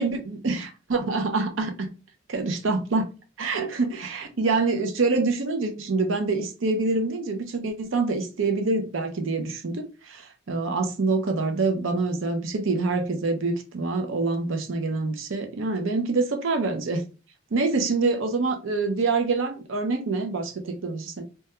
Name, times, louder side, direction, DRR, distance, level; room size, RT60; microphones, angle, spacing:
voice 1, 0.0-1.9 2.3-3.1 3.4-17.0 17.5-21.2, right 3 dB, 75° right, 0.5 m, -26 dB
2.3 x 2.2 x 2.8 m
head